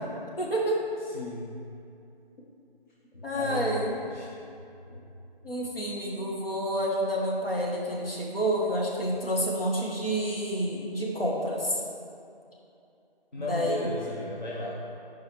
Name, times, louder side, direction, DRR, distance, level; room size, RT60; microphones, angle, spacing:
voice 1, 0.4-0.8 3.2-3.9 5.4-11.8 13.4-13.9, equal, 70° left, -3 dB, 1.6 m, -29 dB
voice 2, 1.0-1.5 3.1-4.3 4.9-5.1 5.6-5.8 13.3-14.8, equal, 50° left, -5 dB, 0.9 m, -35 dB
10.0 x 4.7 x 3.2 m, 2.6 s
figure-of-eight pair, 160°, 30 cm